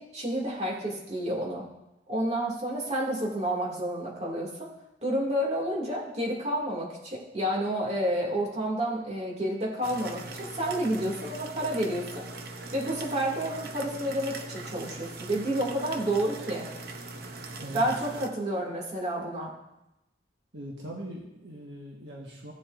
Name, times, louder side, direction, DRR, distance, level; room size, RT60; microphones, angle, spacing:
voice 1, 0.0-1.7 2.1-4.7 5.0-12.2 12.7-16.7 17.7-19.6, right 1 dB, 35° right, -3 dB, 2.3 m, -30 dB
sound 1, 9.8-18.3, right 3 dB, 55° right, 0.8 m, -41 dB
voice 2, 20.5-22.5, right 1 dB, 75° right, -2 dB, 1.5 m, -41 dB
16.0 x 7.4 x 2.6 m, 0.90 s
head